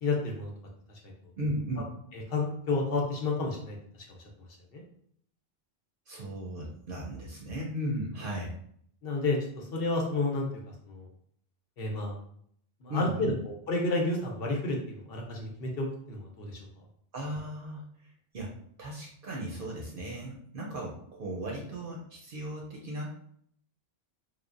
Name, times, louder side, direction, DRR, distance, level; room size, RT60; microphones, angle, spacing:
voice 1, 0.0-0.5 1.0-1.1 2.1-3.8 4.7-4.8 9.0-10.5 10.9-11.1 11.8-12.2 12.8-16.6, left 2 dB, 70° left, 0 dB, 0.9 m, -30 dB
voice 2, 1.4-1.9 6.1-8.5 12.9-13.3 17.1-23.1, right 1 dB, 65° right, -2 dB, 0.7 m, -36 dB
3.2 x 2.1 x 2.4 m, 0.66 s
omnidirectional pair, 1.1 m